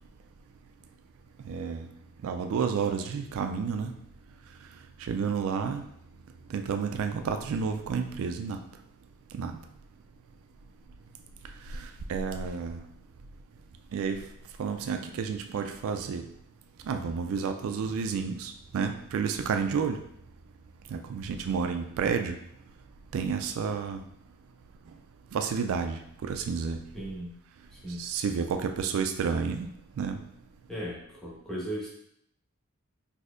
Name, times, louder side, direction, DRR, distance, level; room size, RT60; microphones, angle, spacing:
voice 1, 1.5-1.8 2.2-3.9 5.1-5.8 6.5-8.6 9.3-9.6 12.1-12.8 13.9-14.2 14.6-16.2 16.9-20.0 20.9-22.3 23.1-24.0 25.3-26.8 28.0-29.7 30.0-30.2, right 6 dB, 65° right, 6 dB, 0.3 m, -30 dB
voice 2, 26.9-27.4 27.7-28.1 30.7-31.9, equal, ahead, -6 dB, 1.0 m, -37 dB
4.1 x 2.7 x 2.5 m, 0.72 s
head